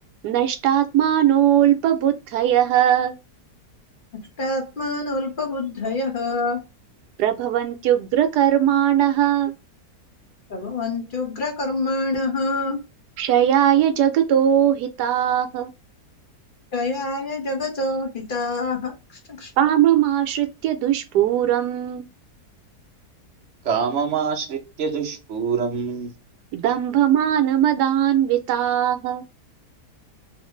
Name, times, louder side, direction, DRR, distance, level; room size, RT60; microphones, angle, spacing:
voice 1, 0.2-3.2 7.2-9.5 13.2-15.7 19.6-22.1 26.5-29.2, right 10 dB, 75° right, 1.2 m, -19 dB
voice 2, 4.4-6.6 10.5-12.8 16.7-18.9 19.3-19.5, left 2 dB, 40° left, 0.9 m, -26 dB
voice 3, 23.6-26.1, right 6 dB, 60° right, 0.8 m, -25 dB
3.2 x 2.5 x 3.1 m
omnidirectional pair, 1.8 m